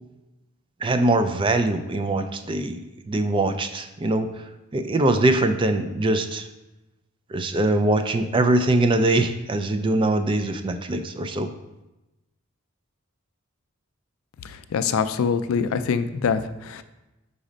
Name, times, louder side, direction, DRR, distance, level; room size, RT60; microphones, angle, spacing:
voice 1, 0.8-2.8 3.1-4.3 4.7-6.5 7.3-11.5, right 2 dB, 25° right, 8 dB, 0.3 m, -22 dB
voice 2, 14.4-16.8, left 6 dB, 75° left, 11 dB, 0.4 m, -24 dB
5.0 x 4.1 x 5.1 m, 1.0 s
head